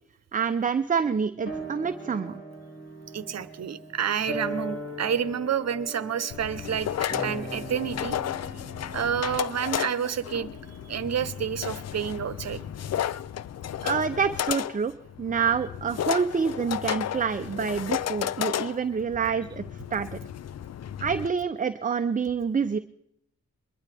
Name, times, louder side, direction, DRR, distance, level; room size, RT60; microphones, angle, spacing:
voice 1, 0.3-2.4 13.8-14.9 15.2-19.6 19.9-20.2 21.0-22.8, right 6 dB, 25° right, 9 dB, 0.6 m, -27 dB
sound 1, 1.5-12.1 12.3-12.4, right 1 dB, 45° left, 4.1 m, -40 dB
voice 2, 3.1-8.2 8.9-10.5 10.9-12.6, right 8 dB, 60° right, 14 dB, 0.9 m, -29 dB
sound 2, 6.3-21.3, left 10 dB, 60° left, 0.5 m, -33 dB
22.5 x 12.0 x 3.5 m, 0.73 s
cardioid pair, 85°, 30 cm